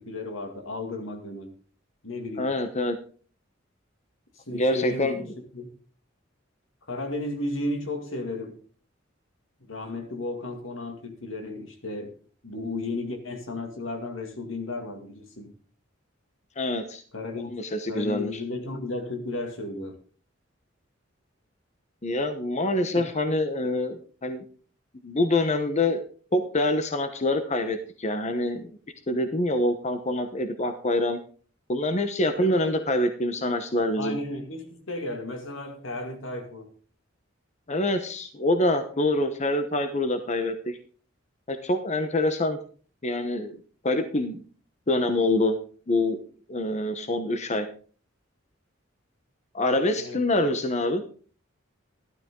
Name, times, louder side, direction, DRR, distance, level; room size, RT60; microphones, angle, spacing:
voice 1, 0.0-1.5 2.0-2.5 4.4-5.8 6.9-8.6 9.6-12.1 12.4-15.5 17.1-17.6 17.9-20.0 22.8-23.1 32.4-32.8 34.0-36.7 50.0-50.2, left 2 dB, 80° left, 2.3 m, -34 dB
voice 2, 2.4-3.0 4.5-5.1 16.6-17.0 17.5-18.4 22.0-24.4 25.0-26.0 26.3-28.7 29.1-31.2 31.7-34.2 37.7-40.8 41.5-42.6 43.0-43.6 43.8-44.4 44.9-45.6 45.9-46.2 46.5-47.7 49.5-51.1, left 1 dB, 35° left, 1.0 m, -25 dB
12.5 x 12.0 x 3.8 m
head